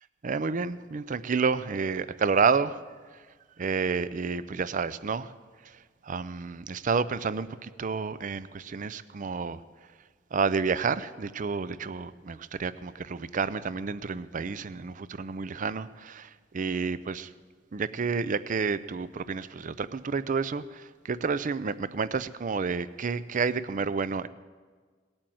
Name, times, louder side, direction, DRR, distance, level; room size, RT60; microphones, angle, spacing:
voice 1, 0.2-2.8 3.6-5.3 6.1-9.6 10.3-17.3 17.7-24.3, right 5 dB, 40° right, 16 dB, 0.5 m, -30 dB
18.5 x 8.8 x 7.7 m, 1.5 s
head